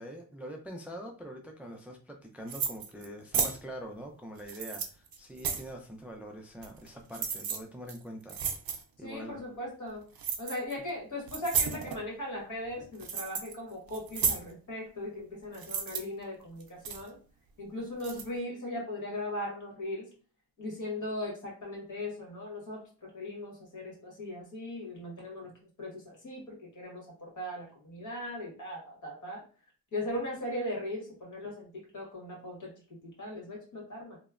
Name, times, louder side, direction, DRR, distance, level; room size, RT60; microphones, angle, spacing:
voice 1, 0.0-8.4 9.0-9.4, equal, 5° right, 2 dB, 0.3 m, -44 dB
sound 1, 2.5-3.1 3.3-3.6 4.4-5.7 6.6-6.9 7.1-7.6 7.9-8.0 8.3-8.8 10.2-10.7 11.3-12.0 12.7-13.5 13.9-14.4 15.5-16.0 16.6-17.1 18.0-18.2, right 6 dB, 80° right, 0.5 m, -32 dB
voice 2, 9.0-10.0 10.4-17.2 17.6-20.1 20.6-29.4 29.9-34.2, left 1 dB, 60° left, -3 dB, 1.4 m, -39 dB
2.9 x 2.0 x 2.4 m, 0.39 s
wide cardioid pair, 85°, 35 cm